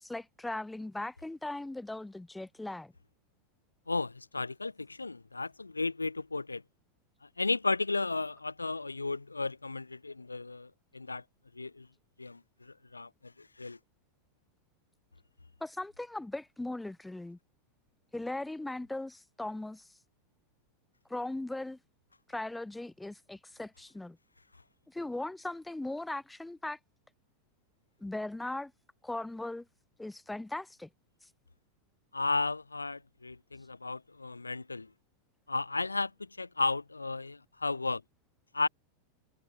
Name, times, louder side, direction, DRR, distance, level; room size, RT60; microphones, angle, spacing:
voice 1, 0.0-2.9 15.6-17.4 18.1-19.9 21.1-21.8 22.3-24.2 24.9-26.8 28.0-28.7 29.0-29.7 30.0-30.9, left 2 dB, 5° left, 0.4 m, -38 dB
voice 2, 3.9-6.6 7.2-11.2 11.5-11.9 12.2-13.8 32.1-34.9 35.5-38.0 38.5-38.7, left 3 dB, 80° left, 0.3 m, -34 dB
figure-of-eight pair, 90°, 0 cm